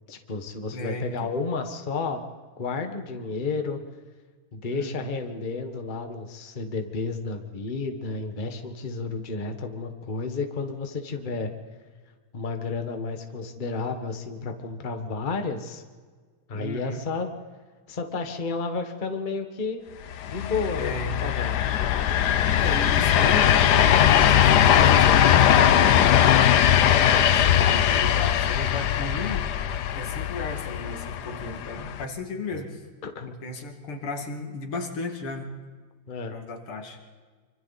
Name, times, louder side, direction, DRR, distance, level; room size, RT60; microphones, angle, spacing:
voice 1, 0.1-2.2 2.6-3.8 4.5-11.5 12.3-15.8 16.5-17.3 17.9-19.8 20.3-21.5 32.5-32.6 33.0-33.3 36.1-36.3, left 4 dB, 25° left, 5 dB, 1.4 m, -31 dB
voice 2, 0.7-1.3 4.7-5.1 16.5-17.0 20.7-21.3 22.3-26.2 26.7-29.5 29.9-32.9 33.3-35.5 36.3-37.0, left 3 dB, 85° left, 3 dB, 3.0 m, -35 dB
sound 1, 20.1-32.0, left 10 dB, 60° left, 1.1 m, -20 dB
26.5 x 25.0 x 4.2 m, 1.5 s
omnidirectional pair, 2.4 m